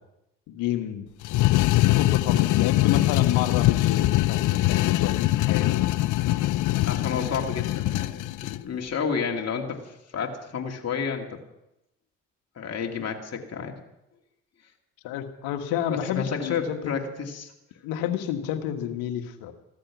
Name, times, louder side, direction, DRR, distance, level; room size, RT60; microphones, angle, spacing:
voice 1, 0.5-1.1 1.9-5.7 15.0-16.9 17.8-19.5, left 10 dB, 80° left, 8 dB, 1.5 m, -30 dB
sound 1, 1.2-8.6, left 16 dB, 65° left, 0.5 m, -22 dB
voice 2, 6.9-11.4 12.6-13.8 15.9-17.5, left 6 dB, 50° left, 2 dB, 2.4 m, -31 dB
15.5 x 13.0 x 6.1 m, 0.87 s
supercardioid pair, 60°, 34 cm